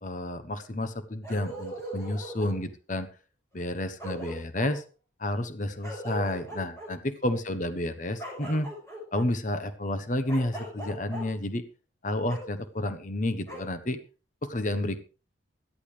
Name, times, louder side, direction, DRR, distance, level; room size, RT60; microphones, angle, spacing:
voice 1, 0.0-3.1 3.5-4.8 5.2-8.7 9.1-11.6 12.0-14.0 14.4-15.0, left 1 dB, 40° left, 10 dB, 1.1 m, -30 dB
Bark, 1.2-2.6 3.6-3.7 4.0-4.7 5.8-6.9 8.2-9.3 10.3-11.2 12.3-12.4 13.5-13.6, right 1 dB, 15° left, 7.0 m, -39 dB
17.5 x 12.5 x 3.4 m, 0.35 s
head